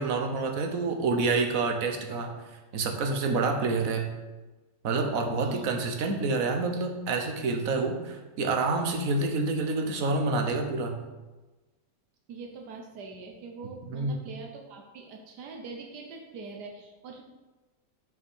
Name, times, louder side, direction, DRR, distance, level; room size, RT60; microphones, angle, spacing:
voice 1, 0.0-2.3 2.7-4.1 4.8-11.0 13.9-14.2, right 3 dB, 60° right, 3 dB, 1.4 m, -28 dB
voice 2, 12.3-17.2, right 4 dB, 90° right, 1 dB, 1.5 m, -43 dB
6.5 x 5.6 x 6.3 m, 1.2 s
omnidirectional pair, 1.7 m